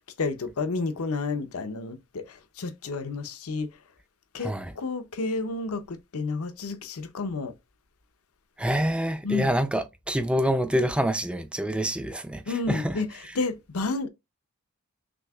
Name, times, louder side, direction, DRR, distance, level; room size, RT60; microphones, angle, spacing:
voice 1, 0.2-3.7 4.3-7.5 9.2-9.5 12.5-14.1, left 3 dB, 75° left, 0.7 m, -31 dB
voice 2, 8.6-12.9, equal, 5° right, 0.4 m, -26 dB
6.1 x 2.8 x 2.3 m
head